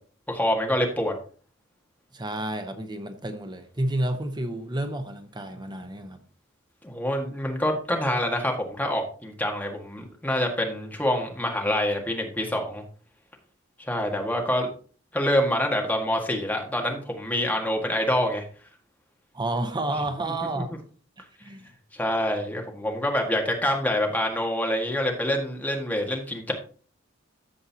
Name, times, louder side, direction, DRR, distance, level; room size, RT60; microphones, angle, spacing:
voice 1, 0.3-1.1 6.8-12.8 13.8-14.7 15.1-18.4 20.5-20.6 21.9-26.5, left 1 dB, 10° left, 1 dB, 1.6 m, -26 dB
voice 2, 2.1-6.2 19.3-20.7 21.4-21.7, right 1 dB, 20° right, 8 dB, 0.8 m, -30 dB
14.0 x 5.4 x 2.8 m, 0.41 s
head